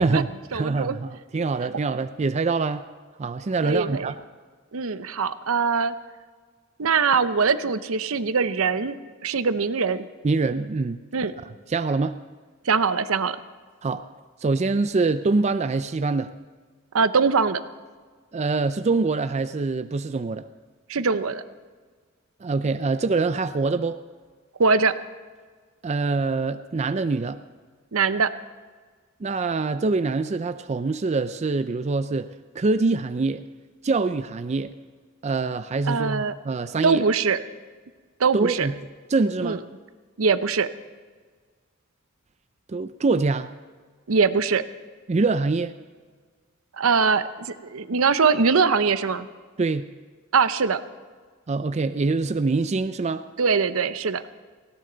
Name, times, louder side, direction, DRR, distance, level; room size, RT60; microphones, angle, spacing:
voice 1, 0.0-2.8 3.2-4.1 10.2-11.0 11.4-12.2 13.8-14.0 14.4-16.3 18.3-20.4 22.4-24.0 25.8-27.4 29.2-32.3 32.5-33.4 33.8-34.7 35.2-37.0 38.3-38.7 39.1-39.6 42.7-43.5 45.1-45.7 49.6-49.9 51.5-53.2, right 3 dB, 30° right, 10 dB, 0.4 m, -24 dB
voice 2, 0.5-1.0 3.6-4.1 4.7-5.9 6.8-9.0 9.2-10.0 11.1-11.3 12.6-13.4 16.9-17.6 20.9-21.4 24.6-24.9 27.9-28.3 35.9-36.3 36.8-37.4 38.2-38.7 39.4-39.6 40.2-40.7 44.1-44.6 46.8-49.3 50.3-50.8 53.4-54.2, right 5 dB, 75° right, 13 dB, 0.7 m, -22 dB
18.5 x 16.5 x 3.9 m, 1.5 s
head